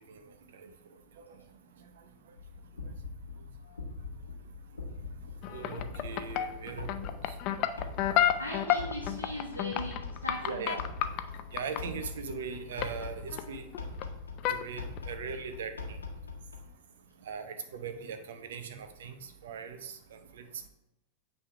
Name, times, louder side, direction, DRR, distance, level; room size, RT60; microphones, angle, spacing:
sound 1, 2.4-16.7, left 4 dB, 75° left, 1.1 m, -43 dB
sound 2, 5.4-11.8 12.8-13.1 13.3-14.0 14.4-14.6 15.0-15.2, left 11 dB, 40° left, 0.4 m, -30 dB
voice 1, 5.5-7.3 10.4-10.8 11.5-13.7 14.5-15.7 17.3-19.1 19.4-19.9, right 6 dB, 60° right, 8 dB, 0.7 m, -39 dB
voice 2, 8.4-10.6, left 1 dB, 85° right, -4 dB, 1.2 m, -39 dB
8.5 x 3.4 x 4.4 m, 0.86 s
figure-of-eight pair, 90°, 0 cm